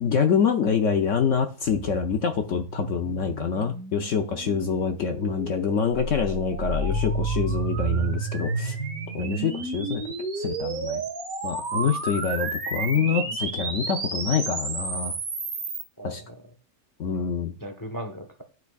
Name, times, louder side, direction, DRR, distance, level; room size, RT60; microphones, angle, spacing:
voice 1, 0.0-8.8 9.1-10.0 10.4-11.0 11.4-15.1 16.0-16.2 17.0-17.5, left 6 dB, 60° left, 5 dB, 0.9 m, -26 dB
sound 1, 1.6-13.0, right 5 dB, 85° right, 1.7 m, -41 dB
sound 2, 5.9-15.8, right 3 dB, 60° right, 1.8 m, -31 dB
sound 3, 6.9-9.4, right 6 dB, 10° left, 0.8 m, -31 dB
voice 2, 16.0-16.4 17.6-18.4, equal, 25° left, 5 dB, 0.4 m, -38 dB
12.0 x 4.6 x 2.3 m, 0.37 s
omnidirectional pair, 1.7 m